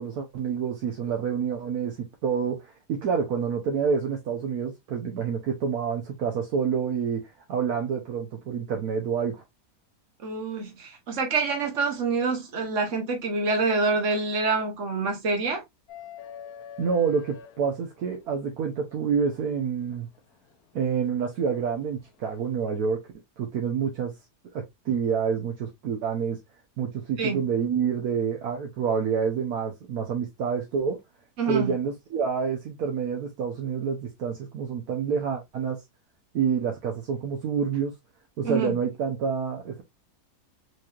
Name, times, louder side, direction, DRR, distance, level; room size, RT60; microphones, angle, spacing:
voice 1, 0.0-2.6 2.9-7.2 7.5-9.4 16.8-20.1 20.7-23.0 23.4-24.1 24.5-26.4 26.8-31.0 31.5-35.8 36.3-37.9 38.4-39.8, right 6 dB, 70° right, 1.3 m, -28 dB
voice 2, 10.2-15.6 27.2-27.4 31.4-31.7 38.4-38.7, right 4 dB, 50° right, 1.5 m, -26 dB
sound 1, 15.9-18.3 20.0-20.1 21.8-22.0, left 8 dB, 70° left, 1.1 m, -44 dB
4.8 x 3.0 x 2.4 m
omnidirectional pair, 1.7 m